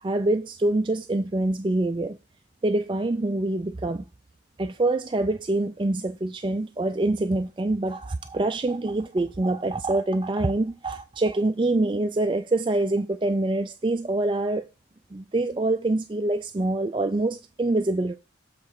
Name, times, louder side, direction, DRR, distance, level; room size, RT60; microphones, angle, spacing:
voice 1, 0.0-2.2 2.6-4.0 4.6-14.6 15.1-18.2, right 2 dB, 25° right, 0.4 m, -25 dB
7.7 x 4.0 x 4.8 m
head